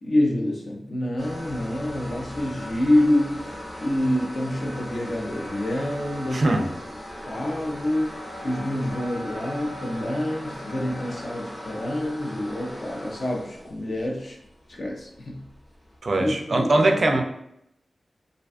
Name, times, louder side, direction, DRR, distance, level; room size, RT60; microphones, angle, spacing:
voice 1, 0.0-6.6 7.3-14.4 14.7-15.4 16.1-16.9, left 1 dB, 50° left, -1 dB, 0.5 m, -27 dB
sound 1, 1.2-15.9, left 1 dB, 15° left, 0.7 m, -38 dB
voice 2, 6.3-6.7 16.0-17.2, right 2 dB, 45° right, 4 dB, 0.3 m, -21 dB
2.4 x 2.2 x 2.5 m, 0.76 s
wide cardioid pair, 135°, 0 cm